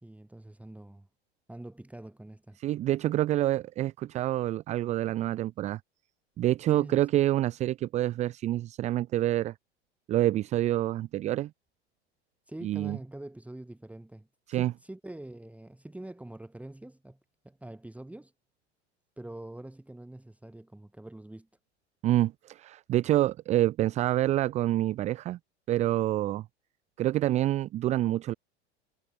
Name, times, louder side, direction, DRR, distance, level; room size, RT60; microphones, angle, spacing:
voice 1, 0.0-1.1 1.5-2.6 6.7-7.2 12.5-17.2 17.4-18.3 19.2-21.5, right 1 dB, 5° right, 2.1 m, -45 dB
voice 2, 2.6-5.8 6.4-9.5 10.1-11.5 12.6-13.0 14.5-14.7 22.0-25.4 25.7-26.4 27.0-28.3, right 14 dB, 20° right, 0.5 m, -27 dB
figure-of-eight pair, 85°, 33 cm